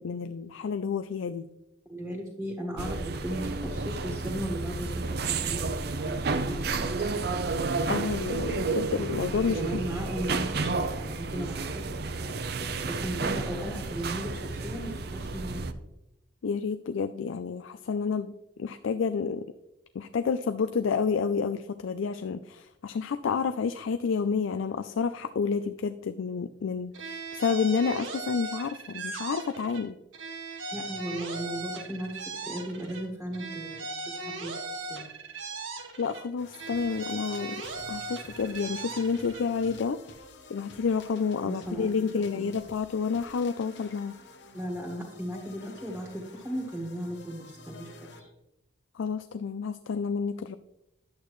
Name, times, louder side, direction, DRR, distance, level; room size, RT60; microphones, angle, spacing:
voice 1, 0.0-1.5 7.9-9.8 16.4-18.3 18.6-19.4 19.9-29.9 36.0-37.6 37.9-40.0 40.5-44.1 49.0-50.6, left 5 dB, 80° left, 11 dB, 0.4 m, -29 dB
voice 2, 1.9-7.3 9.5-12.4 12.8-15.6 30.7-35.2 41.4-41.9 42.3-42.5 44.5-48.3, equal, 5° right, -1 dB, 1.5 m, -37 dB
sound 1, 2.8-15.7, right 3 dB, 50° right, 0.6 m, -31 dB
sound 2, 26.9-29.8 30.1-33.0 33.3-36.2 36.5-39.4, right 3 dB, 80° right, 1.5 m, -38 dB
sound 3, 36.4-48.3, left 3 dB, 60° left, 1.0 m, -50 dB
11.0 x 8.3 x 3.1 m, 0.88 s
head